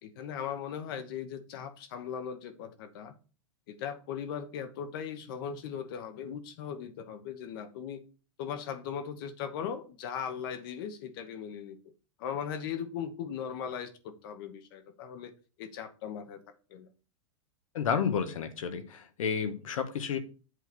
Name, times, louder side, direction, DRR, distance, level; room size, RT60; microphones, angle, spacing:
voice 1, 0.0-3.1 3.7-8.0 8.4-11.8 12.2-15.3 15.6-16.4 16.7-16.9, left 8 dB, 45° left, 10 dB, 1.1 m, -38 dB
voice 2, 17.7-20.2, left 7 dB, 85° left, 10 dB, 1.5 m, -31 dB
8.0 x 4.1 x 6.0 m, 0.35 s
supercardioid pair, 170°, 17 cm